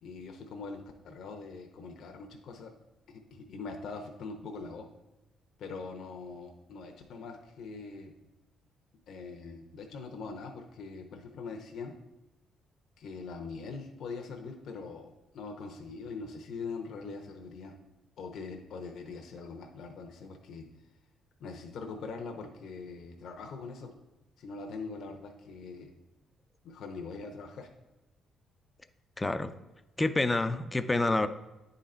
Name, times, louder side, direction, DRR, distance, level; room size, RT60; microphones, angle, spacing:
voice 1, 0.0-2.7 3.1-4.9 5.6-8.1 9.1-12.0 13.0-17.8 18.2-20.7 21.4-23.9 24.4-25.9 26.6-27.7, left 4 dB, 70° left, 3 dB, 0.8 m, -42 dB
voice 2, 29.2-29.5 30.0-31.3, left 2 dB, 20° left, 11 dB, 0.5 m, -27 dB
9.8 x 3.9 x 4.3 m, 1.0 s
cardioid pair, 90°, 0 cm